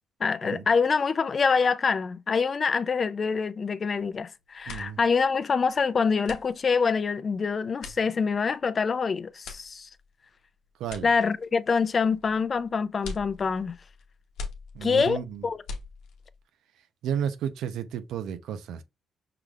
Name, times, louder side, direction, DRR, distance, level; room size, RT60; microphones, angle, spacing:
voice 1, 0.2-9.9 11.0-13.8 14.8-15.6, left 5 dB, 40° left, 0.4 m, -25 dB
sound 1, 3.9-4.2 4.5-16.4, left 4 dB, 85° left, 1.0 m, -43 dB
voice 2, 4.7-5.0 10.8-11.1 14.7-15.5 17.0-18.8, right 9 dB, 85° right, 0.7 m, -32 dB
5.7 x 3.3 x 2.4 m
cardioid pair, 90°, 0 cm